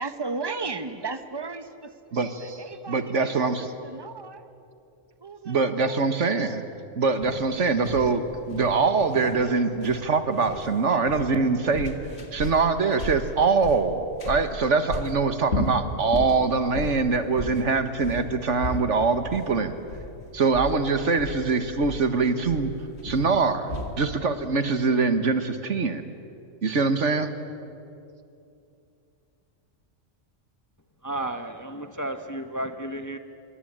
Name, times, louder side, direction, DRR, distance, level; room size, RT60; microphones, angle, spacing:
voice 1, 0.0-4.5 5.2-5.6 5.8-6.0, right 4 dB, 20° right, 10 dB, 1.2 m, -35 dB
voice 2, 2.1-2.6 2.9-3.7 5.5-6.6 7.0-12.0 12.3-19.8 20.3-22.7 23.0-26.1 26.6-27.3, right 4 dB, 65° right, 10 dB, 1.8 m, -23 dB
sound 1, 7.2-24.0, left 2 dB, 55° left, 2.5 m, -35 dB
voice 3, 31.0-33.2, right 1 dB, 15° left, 8 dB, 1.0 m, -32 dB
25.5 x 23.5 x 8.8 m, 2.6 s
omnidirectional pair, 1.3 m